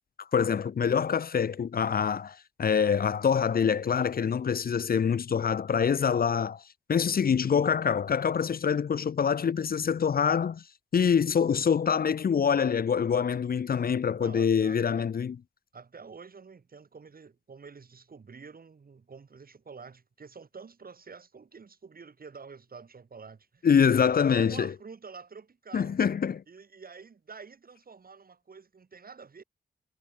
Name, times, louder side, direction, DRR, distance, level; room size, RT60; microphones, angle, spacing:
voice 1, 0.3-6.6 6.9-10.6 10.9-15.4 23.6-24.7 25.7-26.4, left 7 dB, 60° left, 0.6 m, -25 dB
voice 2, 14.2-15.1 15.7-23.7 24.0-26.0 26.5-29.4, right 5 dB, 55° right, 1.7 m, -48 dB
cardioid pair, 55°, 18 cm